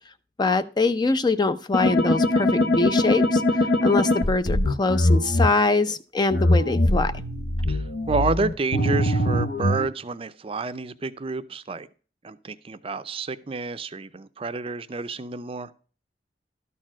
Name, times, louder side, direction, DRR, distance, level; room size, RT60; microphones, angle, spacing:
voice 1, 0.4-7.1, left 3 dB, 25° left, 0.4 m, -23 dB
sound 1, 1.7-5.5 6.3-9.9, left 1 dB, 65° left, 0.8 m, -22 dB
voice 2, 7.7-11.9 12.2-15.7, right 3 dB, 30° right, 0.5 m, -29 dB
12.5 x 4.4 x 6.1 m
head